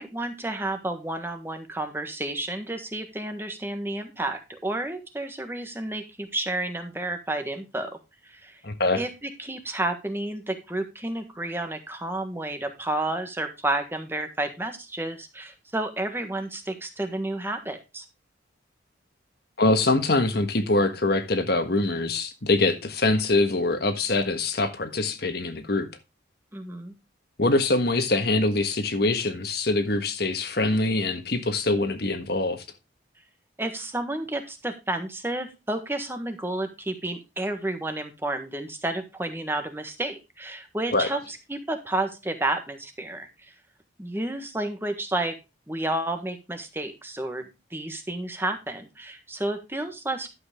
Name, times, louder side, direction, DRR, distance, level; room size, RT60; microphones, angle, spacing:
voice 1, 0.0-7.9 8.2-8.6 9.0-18.0 26.5-26.9 33.6-43.5 44.0-45.3 45.7-50.3, right 1 dB, 10° right, 1.4 m, -31 dB
voice 2, 8.6-9.0 19.6-25.9 27.4-32.6 40.9-41.1, left 2 dB, 55° left, 1.5 m, -24 dB
11.5 x 7.8 x 3.6 m
head